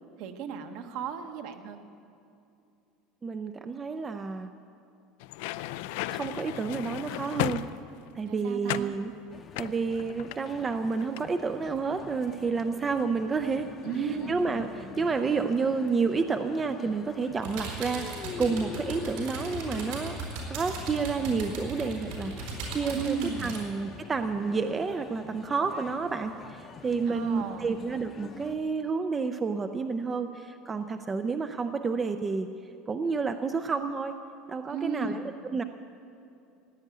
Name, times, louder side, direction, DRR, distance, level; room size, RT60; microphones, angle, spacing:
voice 1, 0.2-1.8 8.3-9.0 13.8-14.4 22.9-23.6 27.1-27.7 34.7-35.3, right 6 dB, 55° right, 6 dB, 1.2 m, -34 dB
voice 2, 3.2-4.5 6.1-7.6 8.2-9.1 9.6-13.7 14.3-20.2 20.5-32.5 32.9-34.2 34.5-35.2 35.5-35.6, right 4 dB, 15° right, 8 dB, 0.4 m, -30 dB
sound 1, 5.2-8.1 8.7-9.0 9.5-10.7 11.0-11.3, left 15 dB, 70° left, 0.4 m, -34 dB
sound 2, 9.3-28.5, left 5 dB, 25° left, 0.7 m, -45 dB
sound 3, 17.4-23.6, right 3 dB, 75° right, 4.3 m, -38 dB
16.0 x 9.3 x 9.4 m, 2.6 s
cardioid pair, 170°, 0 cm